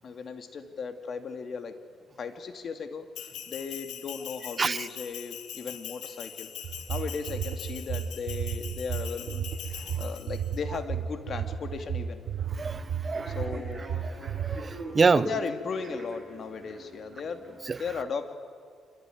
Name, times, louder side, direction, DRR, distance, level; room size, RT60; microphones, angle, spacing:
voice 1, 0.0-1.7 2.2-6.5 6.9-9.5 10.0-12.2 13.3-14.0 15.1-18.3, left 5 dB, 50° left, 7 dB, 2.4 m, -36 dB
Bell, 3.1-10.6, left 9 dB, 80° left, 2.3 m, -42 dB
sound 1, 6.6-14.6, right 8 dB, 65° right, 1.8 m, -33 dB
Human voice / Subway metro underground, 12.2-17.7, right 2 dB, 15° right, 7.5 m, -44 dB
voice 2, 12.6-13.3 14.4-15.3 17.7-17.8, right 4 dB, 35° right, 17 dB, 0.8 m, -26 dB
26.5 x 23.0 x 9.3 m, 2.1 s
cardioid pair, 90°, 0 cm